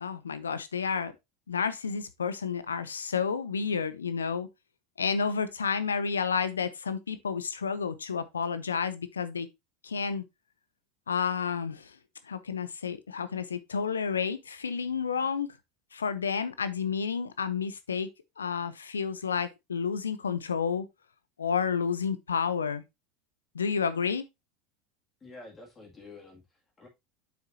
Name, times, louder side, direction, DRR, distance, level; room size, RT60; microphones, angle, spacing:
voice 1, 0.0-1.1 1.5-4.5 5.0-9.5 9.8-10.2 11.1-12.0 12.2-15.6 15.9-18.1 18.4-20.9 21.4-22.8 23.5-24.3, left 6 dB, 90° left, 0.7 m, -30 dB
voice 2, 25.2-26.9, left 3 dB, 25° left, 2.4 m, -49 dB
7.5 x 6.1 x 2.8 m
hypercardioid pair, 85°, 0 cm